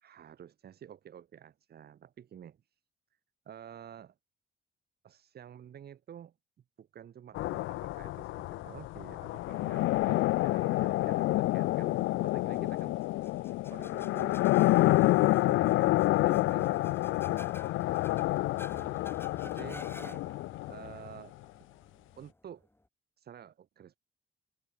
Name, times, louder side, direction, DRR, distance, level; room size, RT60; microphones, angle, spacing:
voice 1, 0.0-2.6 3.5-4.1 5.0-6.3 6.8-13.0 13.7-14.4 14.7-17.5 19.4-20.2 20.7-21.3 22.2-22.7 23.2-24.0, right 9 dB, 55° right, 1.1 m, -50 dB
sound 1, 7.3-21.2, left 18 dB, 80° left, 0.4 m, -28 dB
sound 2, 11.6-22.9, left 1 dB, 10° left, 6.2 m, -53 dB
cardioid pair, 90°, 20 cm